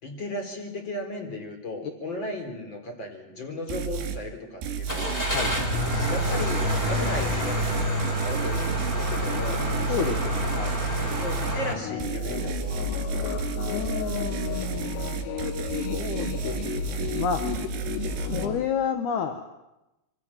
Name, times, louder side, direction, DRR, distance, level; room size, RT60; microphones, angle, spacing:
voice 1, 0.0-5.2 6.1-10.2 11.2-13.3, left 1 dB, 30° left, 4 dB, 4.3 m, -36 dB
sound 1, 3.7-4.2 4.6-11.6 12.0-18.5, right 7 dB, 75° right, 4.5 m, -32 dB
Car / Engine starting, 4.9-11.7, equal, 15° left, 4.3 m, -27 dB
voice 2, 9.9-10.8 13.7-15.2 15.6-17.4 18.3-19.4, left 7 dB, 60° left, 6 dB, 2.2 m, -31 dB
sound 2, 11.6-18.7, left 9 dB, 85° left, 3.3 m, -33 dB
26.5 x 24.5 x 7.4 m, 0.96 s
omnidirectional pair, 4.8 m